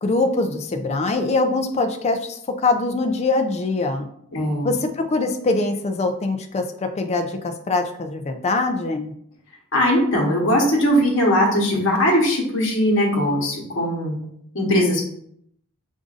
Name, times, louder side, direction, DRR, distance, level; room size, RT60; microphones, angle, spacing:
voice 1, 0.0-4.1 4.6-9.1, left 3 dB, 30° left, 6 dB, 0.3 m, -23 dB
voice 2, 4.3-4.7 9.7-14.2 14.5-15.0, equal, 60° left, -1 dB, 1.1 m, -19 dB
6.0 x 2.6 x 2.5 m, 0.69 s
head